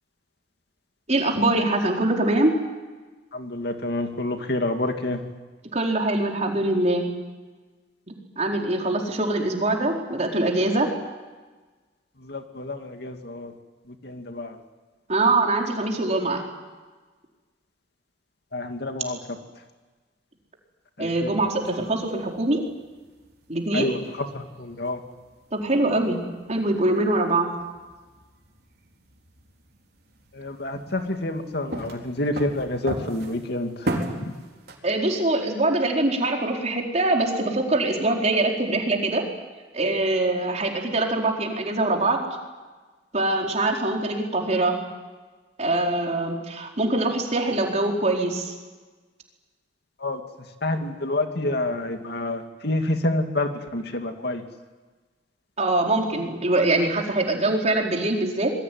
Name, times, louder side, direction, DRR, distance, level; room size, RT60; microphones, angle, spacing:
voice 1, 1.1-2.5 5.7-7.1 8.4-10.9 15.1-16.4 21.0-22.6 23.5-23.9 25.5-26.2 26.5-27.5 34.8-39.2 39.7-42.2 43.1-44.8 45.6-48.5 55.6-58.5, right 2 dB, 40° right, 1 dB, 4.5 m, -23 dB
voice 2, 3.3-5.2 12.3-13.5 14.0-14.5 18.5-19.2 21.0-21.3 23.7-24.0 24.3-25.0 30.3-33.7 50.0-50.2 50.6-54.4, left 2 dB, 65° left, 5 dB, 2.5 m, -28 dB
sound 1, 21.5-34.8, right 1 dB, 60° right, 4.5 m, -38 dB
26.5 x 22.0 x 9.5 m, 1.3 s
head